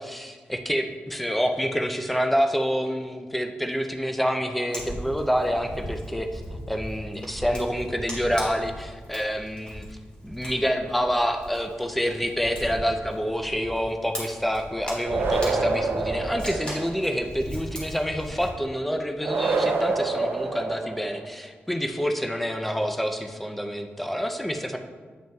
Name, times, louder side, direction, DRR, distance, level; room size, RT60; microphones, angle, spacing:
voice 1, 0.0-6.4 6.7-9.9 10.2-24.8, equal, 5° left, 5 dB, 0.4 m, -27 dB
Fire, 4.7-18.5, equal, 25° left, 1.8 m, -38 dB
sound 1, 15.0-17.1 19.2-21.3, right 3 dB, 70° right, 0.5 m, -27 dB
8.9 x 5.4 x 2.3 m, 1.5 s
wide cardioid pair, 165°, 4 cm